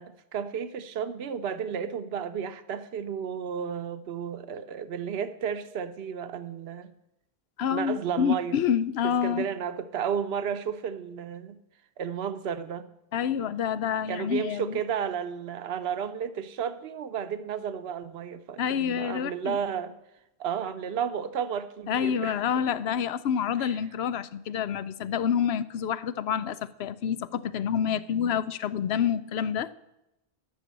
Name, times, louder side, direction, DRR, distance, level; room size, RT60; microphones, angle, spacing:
voice 1, 0.0-6.9 7.7-8.6 9.0-11.6 12.0-12.9 14.1-20.0 20.4-22.4 23.6-23.8, right 7 dB, 80° right, 0.9 m, -33 dB
voice 2, 7.6-9.5 13.1-14.8 18.6-19.6 21.9-29.7, left 8 dB, 80° left, 0.9 m, -28 dB
12.5 x 6.6 x 7.4 m
omnidirectional pair, 1.0 m